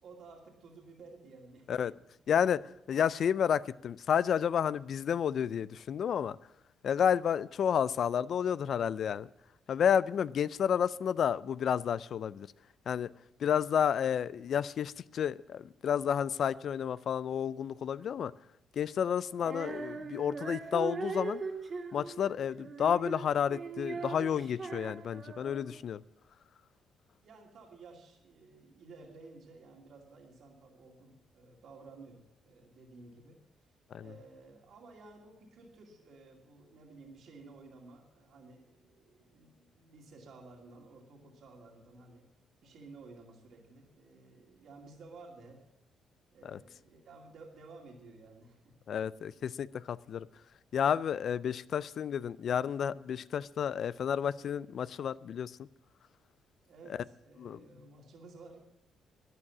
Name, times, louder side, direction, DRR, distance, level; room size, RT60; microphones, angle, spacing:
voice 1, 0.0-1.9 27.2-33.4 34.0-42.2 42.6-45.6 46.3-48.7 56.6-58.6, right 3 dB, 65° right, 2.5 m, -54 dB
voice 2, 2.3-2.6 2.9-6.4 6.8-9.3 9.7-12.5 12.9-13.1 13.4-18.3 18.8-21.4 21.9-26.0 33.9-34.1 46.4-46.6 48.9-50.3 50.7-55.5 57.4-57.6, left 8 dB, 60° left, 0.4 m, -31 dB
Female singing, 19.4-25.8, right 4 dB, 40° right, 2.3 m, -40 dB
12.5 x 9.9 x 7.2 m
cardioid pair, 90°, 0 cm